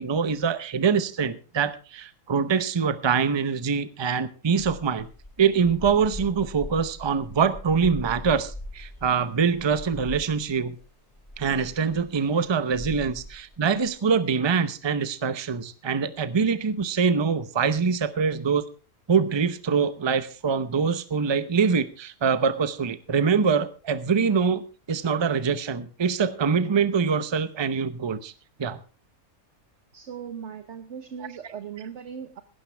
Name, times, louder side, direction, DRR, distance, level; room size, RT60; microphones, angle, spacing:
voice 1, 0.0-5.1 5.4-10.8 11.4-18.6 19.1-28.3 28.6-28.8, right 6 dB, 25° right, 13 dB, 0.6 m, -24 dB
sound 1, 4.6-13.9, left 1 dB, 10° left, 7.2 m, -41 dB
voice 2, 29.9-32.4, right 7 dB, 60° right, 9 dB, 1.2 m, -38 dB
16.5 x 12.5 x 3.4 m, 0.35 s
omnidirectional pair, 1.4 m